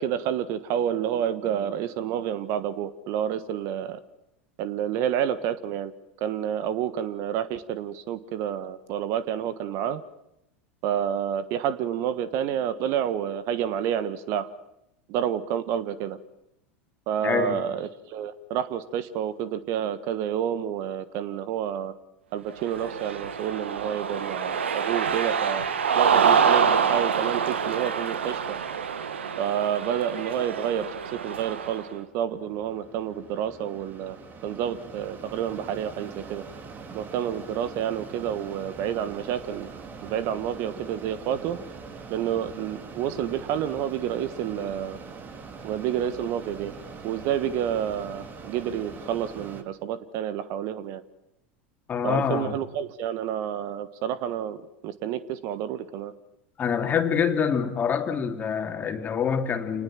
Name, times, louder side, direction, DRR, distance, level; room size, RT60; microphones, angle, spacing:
voice 1, 0.0-4.0 4.6-5.9 6.2-10.0 10.8-14.5 15.1-16.2 17.1-21.9 22.3-25.6 25.9-28.6 29.4-30.9 31.1-34.2 34.4-36.4 36.9-39.7 40.0-41.6 42.1-45.0 45.6-46.7 47.0-51.0 52.0-56.1, right 9 dB, 50° right, 1.4 m, -29 dB
voice 2, 17.2-17.6 51.9-52.6 56.6-59.8, left 7 dB, 30° left, 2.7 m, -26 dB
Cheering, 22.6-31.8, right 7 dB, 75° right, 1.6 m, -26 dB
Mechanisms, 31.9-49.6, right 4 dB, 30° right, 2.6 m, -43 dB
28.0 x 19.5 x 7.6 m
figure-of-eight pair, 85°, 6 cm